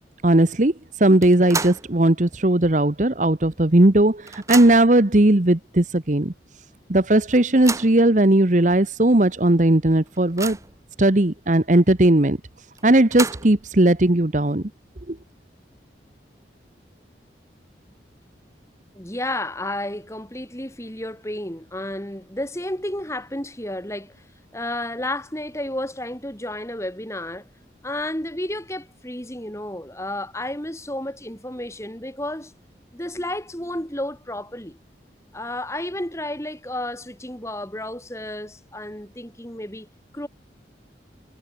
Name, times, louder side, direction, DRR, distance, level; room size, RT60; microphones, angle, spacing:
voice 1, 0.2-0.7 1.0-6.3 6.9-10.6 11.0-12.4 12.8-14.6 15.1-15.2, right 1 dB, 45° right, 1.2 m, -17 dB
sound 1, 1.2-1.9 2.3-2.4 3.5-3.6 3.9-5.0 5.8-5.9 6.3-6.4 7.3-8.0 8.7-8.8 9.2-9.3 9.8-10.8 12.8-13.7, right 4 dB, 15° right, 4.8 m, -31 dB
voice 2, 18.9-24.1 24.5-27.4 27.8-32.5 32.9-34.8 35.3-39.9 40.1-40.3, left 1 dB, 15° left, 4.4 m, -31 dB
head